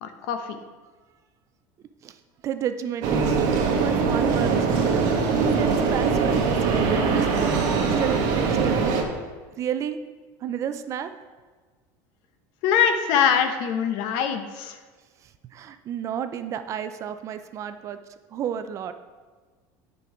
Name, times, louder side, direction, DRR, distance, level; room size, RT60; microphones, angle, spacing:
voice 1, 0.0-0.6 12.6-14.8, left 7 dB, 65° left, 8 dB, 0.9 m, -23 dB
voice 2, 2.4-4.6 5.6-7.5 7.8-8.9 9.6-10.0 10.4-11.1 15.2-18.0 18.3-18.9, right 9 dB, 35° right, 10 dB, 0.5 m, -31 dB
sound 1, 3.0-9.0, right 5 dB, 55° right, 1.4 m, -22 dB
9.1 x 5.3 x 4.9 m, 1.4 s
supercardioid pair, 140°, 9 cm